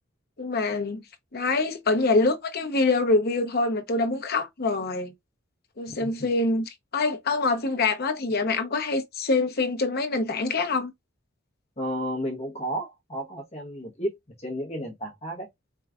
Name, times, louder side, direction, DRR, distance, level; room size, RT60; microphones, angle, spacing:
voice 1, 0.4-1.0 1.3-5.1 5.8-10.9, left 3 dB, 50° left, 0.8 m, -25 dB
voice 2, 11.8-15.5, equal, 35° left, 1.2 m, -32 dB
4.6 x 3.2 x 2.4 m
head